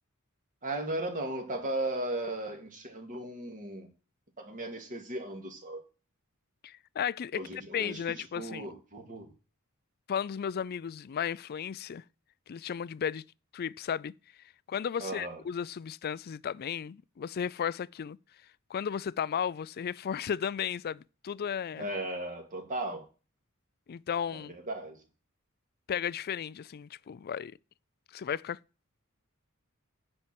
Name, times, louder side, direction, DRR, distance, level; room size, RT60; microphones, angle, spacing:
voice 1, 0.6-3.9 4.4-5.8 7.3-9.3 15.0-15.4 21.7-23.1 24.3-25.0, right 1 dB, 40° right, 2.2 m, -36 dB
voice 2, 6.6-8.7 10.1-12.0 12.5-13.2 13.5-14.1 14.7-18.2 18.7-21.9 23.9-24.6 25.9-27.5 28.1-28.6, left 8 dB, 45° left, 0.4 m, -34 dB
9.9 x 4.4 x 7.7 m
head